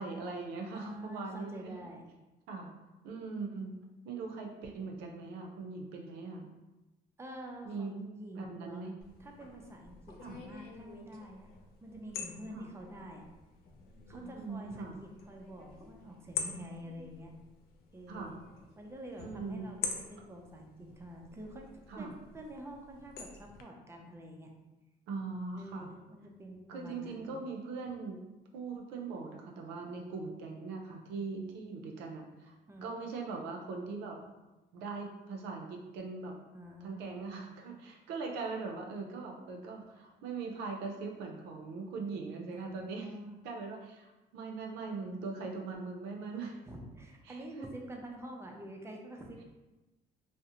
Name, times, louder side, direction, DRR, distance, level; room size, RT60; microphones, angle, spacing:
voice 1, 0.0-1.9 2.5-2.7 3.0-3.7 4.0-6.5 7.6-7.9 8.3-8.9 10.2-10.4 12.5-12.7 14.1-15.0 18.1-18.3 19.2-19.7 21.9-22.1 25.1-25.9 26.7-28.2 28.5-32.6 32.8-34.2 34.7-36.3 36.8-43.1 43.4-46.6 47.3-47.7, right 4 dB, 85° right, 2 dB, 0.5 m, -41 dB
voice 2, 0.7-2.0 7.2-8.9 9.2-11.5 11.8-13.3 14.1-17.3 17.9-18.4 18.8-21.7 22.0-24.5 25.6-27.3 32.7-32.9 36.5-37.3 42.5-43.4 46.7-49.4, equal, 15° right, 1 dB, 0.4 m, -47 dB
sound 1, 9.0-23.6, left 5 dB, 65° left, 0.4 m, -46 dB
2.4 x 2.0 x 2.7 m, 1.1 s
cardioid pair, 110°, 17 cm